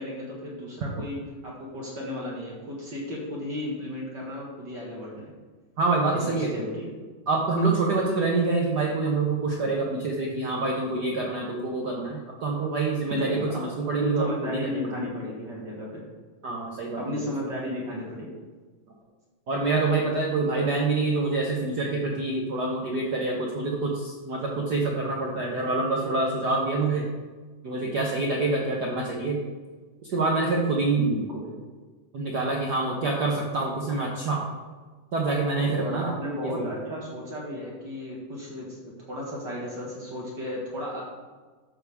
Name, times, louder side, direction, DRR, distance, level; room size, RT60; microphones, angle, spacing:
voice 1, 0.0-5.3 6.1-6.9 13.1-13.6 14.0-16.0 16.9-18.3 31.0-31.4 35.7-41.0, left 1 dB, 40° right, -4 dB, 2.0 m, -34 dB
voice 2, 5.8-6.5 7.3-15.1 16.4-17.0 19.5-27.1 27.6-29.4 30.1-31.1 32.1-34.5 35.1-36.1 36.6-36.7, right 3 dB, 80° right, -1 dB, 0.9 m, -26 dB
12.0 x 7.6 x 3.5 m, 1.4 s
omnidirectional pair, 3.3 m